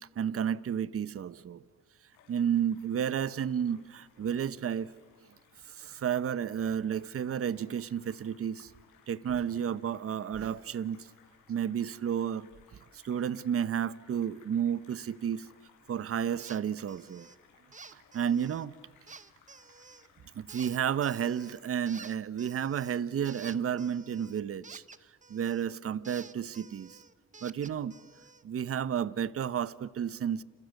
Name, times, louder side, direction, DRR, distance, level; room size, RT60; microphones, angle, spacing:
voice 1, 0.2-1.6 2.3-4.9 5.7-8.7 9.1-11.0 11.5-12.5 12.9-15.5 15.9-17.3 17.9-18.7 20.3-24.8 25.3-27.0 27.4-27.9 28.4-30.4, right 8 dB, 50° right, 1.0 m, -32 dB
sound 1, 2.1-21.8, left 6 dB, 85° left, 7.2 m, -63 dB
sound 2, 16.4-16.6 16.9-17.4 17.7-18.6 19.1-20.1 20.5-21.6 21.9-25.7 26.0-28.4, right 4 dB, 25° right, 1.2 m, -51 dB
30.0 x 29.0 x 6.6 m
cardioid pair, 90°, 30 cm